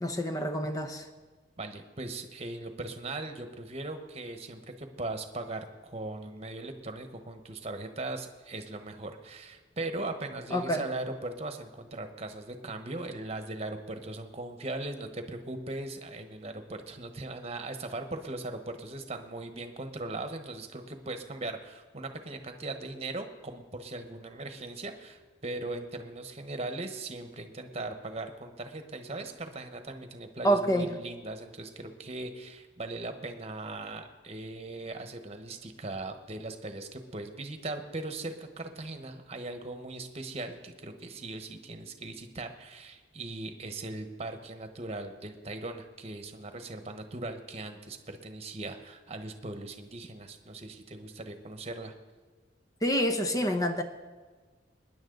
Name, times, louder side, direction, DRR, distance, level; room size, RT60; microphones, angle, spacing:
voice 1, 0.0-1.1 10.5-10.8 30.4-30.9 52.8-53.8, equal, 20° left, 0.8 m, -27 dB
voice 2, 1.6-51.9, right 2 dB, 35° right, 1.2 m, -39 dB
21.0 x 10.5 x 3.9 m
head